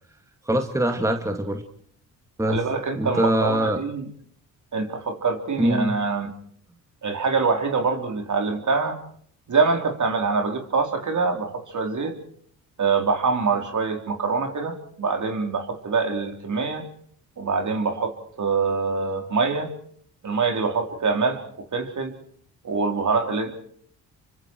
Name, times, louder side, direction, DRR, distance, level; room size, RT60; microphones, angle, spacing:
voice 1, 0.4-1.6 2.4-2.6 3.0-3.8 5.6-6.0, right 1 dB, 5° right, 5 dB, 2.5 m, -23 dB
voice 2, 2.5-4.1 4.7-6.3 7.0-9.0 9.5-12.1 12.8-16.8 17.4-19.7 20.2-22.2 22.6-23.5, right 4 dB, 45° right, 4 dB, 4.3 m, -24 dB
27.5 x 24.5 x 4.8 m, 0.62 s
supercardioid pair, 60°, 40 cm